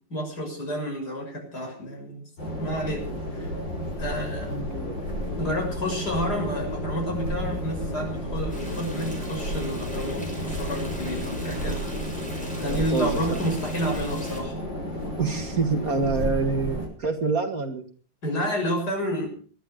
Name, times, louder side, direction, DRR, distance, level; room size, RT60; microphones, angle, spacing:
voice 1, 0.1-2.2 2.6-3.1 3.3-3.5 4.0-4.5 5.4-11.9 12.6-14.6 18.2-19.3, equal, 55° left, 2 dB, 7.2 m, -30 dB
sound 1, 2.4-16.9, equal, 75° left, 7.1 m, -32 dB
voice 2, 4.5-5.0 12.6-13.4 15.2-17.9, right 4 dB, 50° right, 5 dB, 2.3 m, -27 dB
sound 2, 5.2-13.6, right 2 dB, 30° right, 3.3 m, -45 dB
Stream, 8.5-14.4, left 1 dB, 5° left, 6.0 m, -41 dB
20.0 x 12.5 x 5.1 m, 0.41 s
omnidirectional pair, 2.0 m